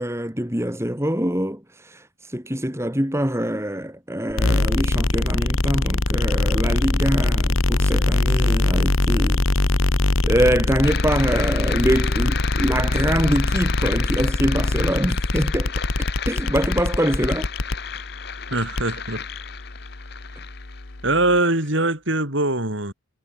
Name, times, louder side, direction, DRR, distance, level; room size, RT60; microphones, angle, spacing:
voice 1, 0.0-9.4 10.2-15.7 16.3-17.5, equal, 10° right, 3.6 m, -24 dB
sound 1, 4.3-21.4, left 2 dB, 70° left, 1.5 m, -23 dB
sound 2, 10.8-21.7, left 7 dB, 50° left, 6.9 m, -34 dB
voice 2, 18.5-19.2 21.0-22.9, right 2 dB, 55° right, 5.5 m, -22 dB
head